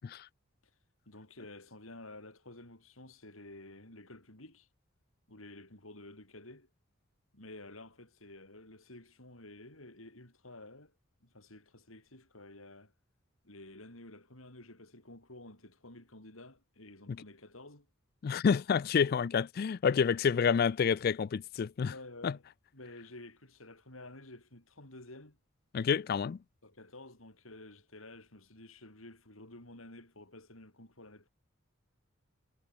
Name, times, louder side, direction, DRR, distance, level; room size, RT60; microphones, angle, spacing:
voice 1, 1.1-4.7 5.3-6.7 7.3-10.9 11.2-12.9 13.4-17.9 21.9-22.4 22.7-25.4 26.6-31.3, left 2 dB, 85° left, 7.2 m, -51 dB
voice 2, 18.2-21.9 22.2-22.4 25.7-26.4, left 6 dB, 45° left, 0.3 m, -29 dB
head